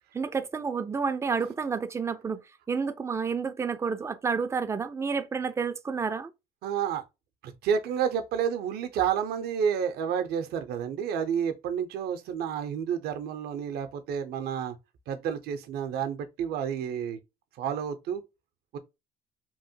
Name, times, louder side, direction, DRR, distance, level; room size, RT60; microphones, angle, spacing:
voice 1, 0.1-2.4 2.7-6.3, right 5 dB, 15° right, 0.3 m, -30 dB
voice 2, 6.6-7.0 7.4-14.8 15.1-17.2 17.6-18.2 18.7-18.8, right 8 dB, 70° right, 0.5 m, -30 dB
2.9 x 2.1 x 2.6 m
cardioid pair, 110°, 17 cm